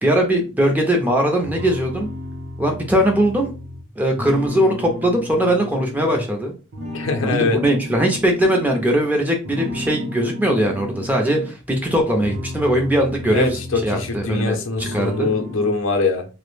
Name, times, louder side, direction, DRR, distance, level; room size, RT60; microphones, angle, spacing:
voice 1, 0.0-2.1 2.6-3.5 4.0-6.5 7.2-15.3, right 1 dB, 10° right, 0.4 m, -20 dB
sound 1, 1.4-6.3 6.7-9.0 9.4-11.6 12.0-14.5 14.8-15.7, left 1 dB, 50° right, 0.6 m, -33 dB
voice 2, 6.9-7.6 13.3-16.3, left 3 dB, 70° left, 0.5 m, -22 dB
2.2 x 2.0 x 3.1 m
head